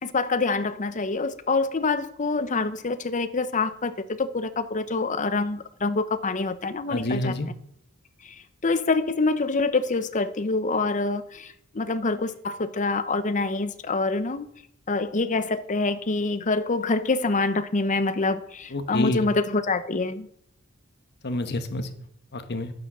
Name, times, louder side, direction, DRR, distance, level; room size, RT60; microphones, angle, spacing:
voice 1, 0.0-7.3 8.2-8.3 8.6-14.5 14.9-20.3, left 3 dB, 35° left, 0.8 m, -26 dB
voice 2, 6.9-7.5 18.7-19.2 21.2-21.9 22.3-22.7, left 2 dB, 50° left, 1.3 m, -28 dB
11.0 x 9.5 x 6.2 m
head